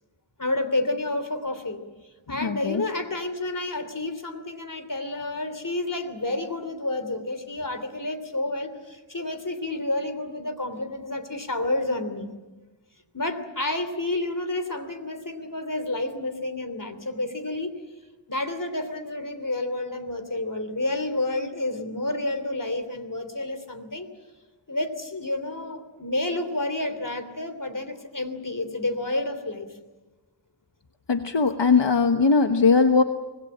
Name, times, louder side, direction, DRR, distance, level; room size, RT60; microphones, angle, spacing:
voice 1, 0.4-1.8 2.3-12.3 13.1-17.8 18.3-24.1 24.7-29.7, left 2 dB, 45° left, 10 dB, 3.2 m, -30 dB
voice 2, 2.4-2.8 31.1-33.0, left 4 dB, 65° left, 6 dB, 1.2 m, -20 dB
25.5 x 20.0 x 8.7 m, 1.2 s
wide cardioid pair, 45°, 46 cm